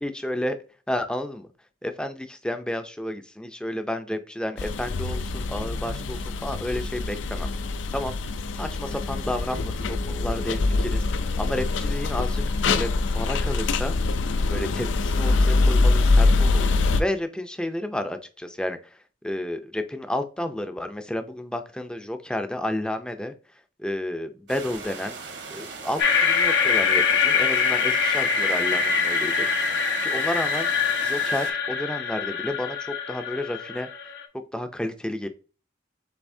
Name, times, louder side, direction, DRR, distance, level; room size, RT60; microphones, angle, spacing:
voice 1, 0.0-0.6 0.9-1.5 1.8-7.5 7.9-8.2 8.5-14.0 14.5-19.0 19.2-23.3 23.8-25.2 25.5-29.5 30.0-30.7 31.0-33.9 34.5-35.3, left 1 dB, 5° left, 7 dB, 0.4 m, -31 dB
sound 1, 4.6-17.0, left 3 dB, 80° left, 0.4 m, -24 dB
sound 2, 24.5-31.5, right 4 dB, 70° right, 1.1 m, -39 dB
sound 3, 26.0-34.2, left 5 dB, 60° left, 1.1 m, -24 dB
6.8 x 2.7 x 2.6 m, 0.36 s
head